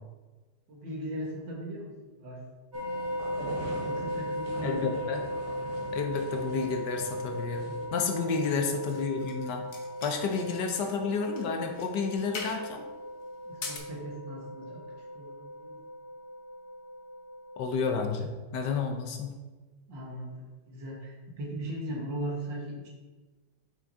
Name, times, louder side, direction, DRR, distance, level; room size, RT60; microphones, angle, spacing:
voice 1, 0.7-2.4 3.8-4.9 8.4-8.6 13.4-15.8 19.9-22.9, right 1 dB, 80° right, -2 dB, 2.0 m, -38 dB
sound 1, 2.7-17.7, equal, 25° right, 2.2 m, -37 dB
sound 2, 2.7-7.9, right 2 dB, 50° right, 1.2 m, -43 dB
voice 2, 4.6-5.2 5.9-9.6 10.0-12.9 17.6-19.3, left 5 dB, 70° left, 5 dB, 1.4 m, -31 dB
sound 3, 8.3-9.4 9.7-10.9 11.2-11.4 11.7-11.9 12.3-12.7 13.4-13.8, left 4 dB, 50° left, 1.3 m, -41 dB
6.1 x 6.0 x 4.1 m, 1.2 s
omnidirectional pair, 2.0 m